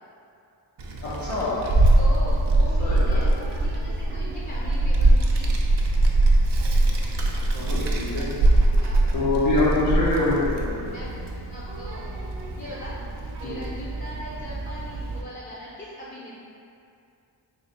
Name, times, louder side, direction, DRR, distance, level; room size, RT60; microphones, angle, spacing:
Child speech kid speaking, 0.8-15.2, right 2 dB, 65° right, 0.5 m, -23 dB
voice 1, 1.0-1.7 2.8-3.2 7.5-8.3 9.1-10.7 13.4-13.7, left 2 dB, 90° left, -9 dB, 0.7 m, -25 dB
voice 2, 2.0-5.6 8.8-9.3 10.9-12.2 12.5-13.0 13.3-16.4, left 1 dB, 25° left, -6 dB, 0.4 m, -40 dB
3.3 x 2.4 x 4.1 m, 2.6 s
wide cardioid pair, 70°, 46 cm